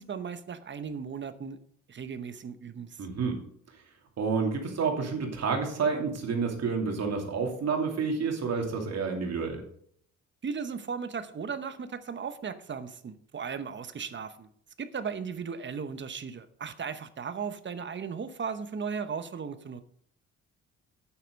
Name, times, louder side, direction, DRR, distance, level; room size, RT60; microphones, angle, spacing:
voice 1, 0.0-1.6 1.9-3.1 10.4-14.5 14.8-19.8, right 6 dB, 40° right, 11 dB, 0.9 m, -36 dB
voice 2, 3.0-3.4 4.2-9.6, right 5 dB, 60° right, 2 dB, 2.7 m, -29 dB
8.7 x 7.9 x 5.2 m, 0.65 s
cardioid pair, 90°, 30 cm